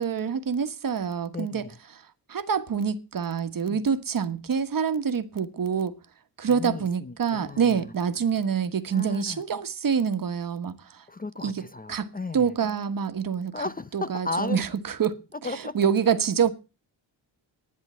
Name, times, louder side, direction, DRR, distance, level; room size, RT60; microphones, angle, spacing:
voice 1, 0.0-1.7 2.3-6.0 6.4-11.0 11.4-11.6 11.9-12.1 12.3-13.5 13.9-15.2 15.7-16.5, right 7 dB, 50° right, 1.5 m, -26 dB
voice 2, 1.3-1.8 3.7-3.8 6.4-7.9 8.7-9.4 11.1-12.6 13.5-14.6 15.4-15.8, left 3 dB, 20° left, 0.6 m, -35 dB
12.5 x 11.0 x 4.4 m
cardioid pair, 105°, 43 cm